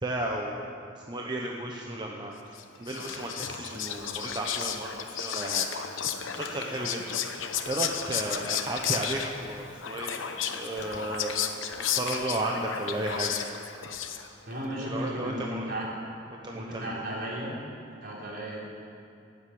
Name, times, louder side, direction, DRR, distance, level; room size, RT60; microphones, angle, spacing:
voice 1, 0.0-7.2 7.7-10.2 10.5-11.3 11.8-13.4 14.8-15.7 16.3-17.0, right 1 dB, 25° right, -1 dB, 1.0 m, -34 dB
Whispering, 2.6-14.5, left 8 dB, 85° left, 0.9 m, -33 dB
sound 1, 2.9-3.5 4.5-4.9 6.4-7.3 8.6-9.3 10.2-10.3 10.7-11.1 12.0-12.4, left 4 dB, 60° left, 1.2 m, -46 dB
voice 2, 14.5-15.9 16.5-17.5 18.0-18.6, right 1 dB, 55° right, -4 dB, 3.7 m, -34 dB
17.5 x 8.2 x 8.5 m, 2.5 s
head